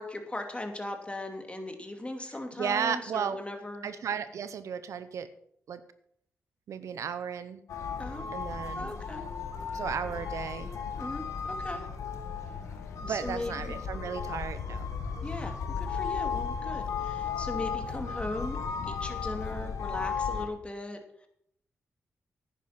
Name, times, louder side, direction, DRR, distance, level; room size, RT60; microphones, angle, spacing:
voice 1, 0.0-3.9 8.0-8.2 8.7-9.2 11.0-11.9 12.4-12.8 13.1-13.8 15.2-18.6 18.9-21.3, left 1 dB, 20° left, 5 dB, 2.6 m, -38 dB
voice 2, 2.6-3.4 3.8-5.3 5.7-5.8 6.7-7.6 8.3-8.9 9.7-10.7 13.0-14.9, right 7 dB, 80° right, 12 dB, 0.8 m, -34 dB
sound 1, 7.7-20.5, left 6 dB, 85° left, 1.5 m, -35 dB
10.5 x 9.3 x 5.8 m, 0.69 s
cardioid pair, 55°, 5 cm